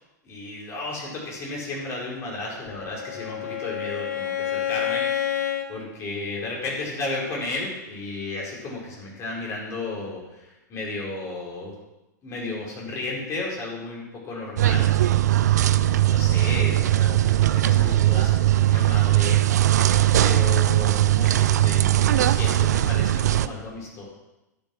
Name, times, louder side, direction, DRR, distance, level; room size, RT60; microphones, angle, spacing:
voice 1, 0.2-5.4 5.7-11.7 12.2-14.9 15.5-19.4 20.2-24.0, left 2 dB, 30° left, -3 dB, 4.9 m, -33 dB
Bowed string instrument, 2.5-5.7, left 10 dB, 75° left, 1.4 m, -29 dB
sound 1, 14.6-23.5, right 13 dB, 65° right, 0.5 m, -19 dB
12.0 x 7.6 x 6.2 m, 0.98 s
figure-of-eight pair, 100°, 10 cm